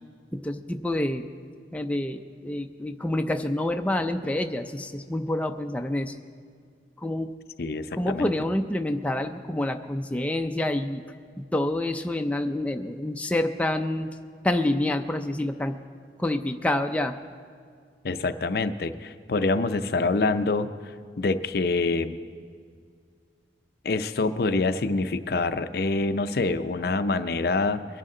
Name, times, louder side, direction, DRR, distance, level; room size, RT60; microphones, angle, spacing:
voice 1, 0.3-1.3 1.7-6.1 7.0-7.3 7.9-11.0 11.4-14.1 14.4-15.8 16.2-17.2, left 1 dB, 10° left, 5 dB, 0.4 m, -27 dB
voice 2, 7.6-8.3 18.0-20.7 21.2-22.2 23.8-27.9, left 3 dB, 60° left, 11 dB, 0.5 m, -26 dB
22.5 x 10.5 x 3.8 m, 2.1 s
head